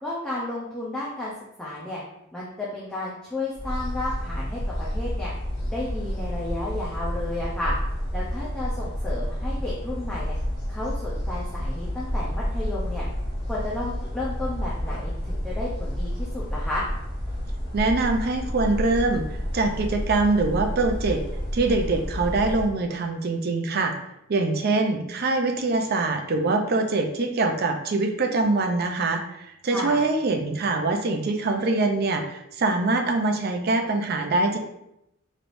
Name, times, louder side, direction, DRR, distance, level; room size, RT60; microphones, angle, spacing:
voice 1, 0.0-1.3 1.6-2.0 2.3-5.3 5.7-7.7 8.1-10.4 10.7-13.0 13.5-16.8 29.7-30.0, left 2 dB, 5° left, -7 dB, 0.6 m, -32 dB
sound 1, 3.5-22.7, equal, 20° left, 1.4 m, -30 dB
voice 2, 17.7-19.2 19.5-21.2 21.5-23.9 24.3-34.6, right 3 dB, 50° right, 4 dB, 0.5 m, -24 dB
4.6 x 3.2 x 2.6 m, 0.83 s
head